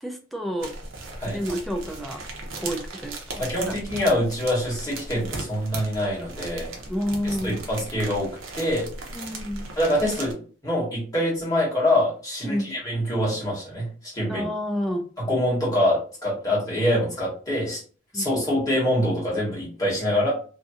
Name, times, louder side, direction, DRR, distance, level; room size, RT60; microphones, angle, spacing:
voice 1, 0.0-0.7 1.2-2.2 2.6-3.7 6.9-7.6 9.1-9.7 12.4-12.7 14.3-15.1 18.1-18.3, equal, ahead, 3 dB, 0.4 m, -29 dB
sound 1, 0.6-10.3, right 2 dB, 80° right, 0.7 m, -37 dB
voice 2, 3.4-6.7 7.2-8.9 9.8-10.4 10.6-14.5 15.2-17.8 18.1-20.3, left 1 dB, 20° left, -6 dB, 1.4 m, -25 dB
2.7 x 2.5 x 2.4 m, 0.41 s
head